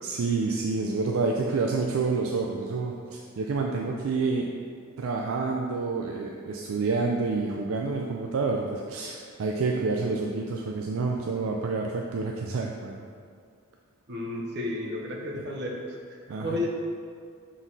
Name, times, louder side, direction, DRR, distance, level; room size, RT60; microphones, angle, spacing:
voice 1, 0.0-4.5 5.0-13.0 15.3-15.4 16.3-16.6, right 4 dB, 70° right, 0 dB, 0.4 m, -28 dB
voice 2, 14.1-15.8 16.1-16.7, left 2 dB, 50° right, -1 dB, 0.8 m, -32 dB
6.1 x 3.9 x 4.0 m, 2.2 s
head